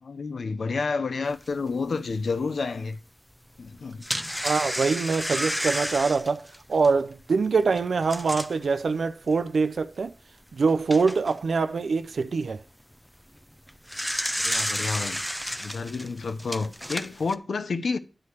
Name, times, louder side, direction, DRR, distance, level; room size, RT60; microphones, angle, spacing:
voice 1, 0.0-3.0 3.6-4.1 14.4-15.2 15.6-18.0, left 4 dB, 85° left, 0.6 m, -30 dB
sound 1, 1.5-1.6 2.1-2.2 3.7-8.6 9.3-9.4 9.8-9.9 10.5-11.4 13.6-17.4, equal, 5° left, 0.5 m, -31 dB
voice 2, 4.3-10.1 10.5-12.6, right 4 dB, 85° right, 0.3 m, -24 dB
9.7 x 3.2 x 6.9 m
wide cardioid pair, 105°, 0 cm